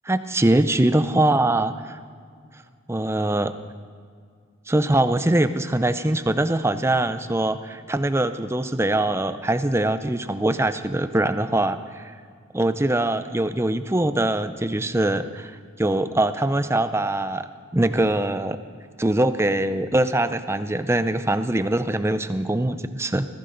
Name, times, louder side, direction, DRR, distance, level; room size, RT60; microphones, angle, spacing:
voice 1, 0.0-2.0 2.9-3.5 4.7-12.1 12.5-18.6 19.0-23.3, right 1 dB, 10° right, 11 dB, 0.5 m, -23 dB
21.0 x 15.5 x 4.0 m, 2.1 s
head